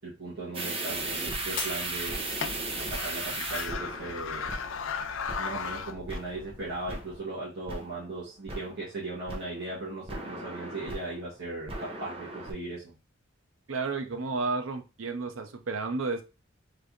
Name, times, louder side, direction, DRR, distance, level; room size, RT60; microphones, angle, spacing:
voice 1, 0.0-2.2 2.9-4.5 5.4-13.0, right 2 dB, 60° right, 1.4 m, -38 dB
sound 1, 0.5-5.0 5.3-5.7 6.1-6.5 6.9-7.4 7.7-8.2 8.5-8.9 9.3-11.3 11.7-12.5, right 2 dB, 30° right, 0.9 m, -36 dB
Wooden wheel, 0.9-7.2, left 6 dB, 70° left, 0.5 m, -38 dB
Shatter, 1.6-2.8 3.4-3.8 4.4-4.5, left 5 dB, 45° left, 1.0 m, -39 dB
voice 2, 13.7-16.2, right 3 dB, 85° right, 0.7 m, -32 dB
3.4 x 3.3 x 3.9 m
head